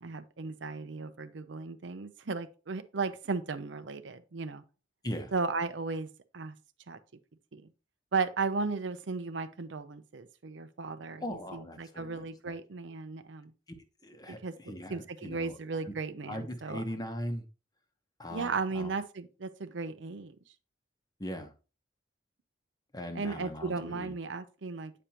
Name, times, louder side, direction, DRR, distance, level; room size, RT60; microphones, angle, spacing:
voice 1, 0.0-4.6 5.3-6.1 6.3-6.6 6.9-7.0 7.5-7.6 8.1-11.2 11.5-13.5 14.3-14.5 14.9-16.8 18.3-20.4 23.1-24.9, right 4 dB, 75° right, 0.6 m, -35 dB
voice 2, 11.2-12.3 14.0-15.6 15.9-16.0 16.3-17.4 18.2-18.9 21.2-21.5 22.9-24.1, equal, 20° left, 0.9 m, -39 dB
8.6 x 5.1 x 2.9 m
head